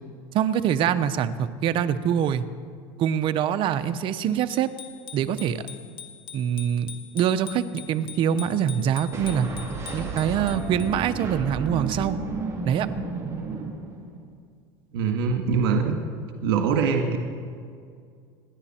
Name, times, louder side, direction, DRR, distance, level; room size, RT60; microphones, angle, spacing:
voice 1, 0.3-2.4 3.0-4.7 5.1-5.6 6.3-6.9 7.1-9.5 9.9-12.2 12.6-12.9, right 9 dB, 45° right, 11 dB, 0.9 m, -24 dB
Bicycle bell, 4.5-11.1, left 8 dB, 45° left, 1.5 m, -43 dB
sound 1, 9.1-14.3, right 4 dB, 25° right, 2.9 m, -33 dB
voice 2, 14.9-16.0 16.4-17.2, right 5 dB, 85° right, 2 dB, 1.8 m, -23 dB
28.0 x 11.0 x 4.4 m, 2.2 s
supercardioid pair, 130°, 12 cm